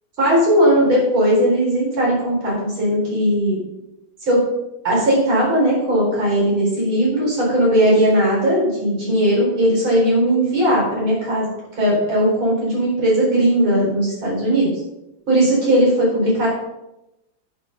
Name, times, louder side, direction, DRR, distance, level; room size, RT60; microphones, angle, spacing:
voice 1, 0.2-3.6 4.3-4.4 4.8-11.4 11.8-14.7 15.3-16.5, right 1 dB, 80° right, -5 dB, 5.5 m, -18 dB
10.0 x 7.1 x 5.5 m, 0.92 s
omnidirectional pair, 2.2 m